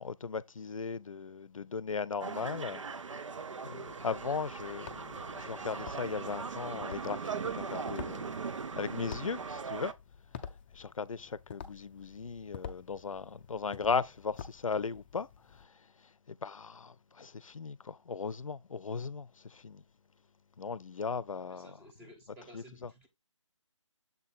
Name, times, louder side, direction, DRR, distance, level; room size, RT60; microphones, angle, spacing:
voice 1, 0.0-2.8 3.6-8.3 8.8-9.9 10.7-15.3 15.6-15.7 16.3-19.8 20.6-21.8 22.5-22.9, left 5 dB, 85° left, 0.6 m, -37 dB
sound 1, 2.2-9.9, right 5 dB, 70° right, 0.8 m, -39 dB
sound 2, 3.8-15.6, left 8 dB, 20° left, 0.5 m, -50 dB
voice 2, 21.5-23.1, right 1 dB, 10° right, 1.0 m, -55 dB
7.2 x 3.8 x 4.1 m
figure-of-eight pair, 155°, 17 cm